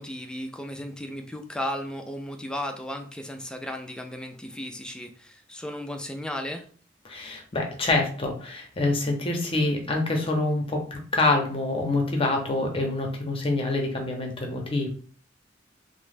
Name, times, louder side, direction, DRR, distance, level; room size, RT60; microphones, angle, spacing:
voice 1, 0.0-6.7, left 1 dB, 5° left, 5 dB, 0.3 m, -35 dB
voice 2, 7.0-14.9, left 2 dB, 30° left, 3 dB, 0.7 m, -26 dB
2.9 x 2.0 x 3.3 m, 0.43 s
head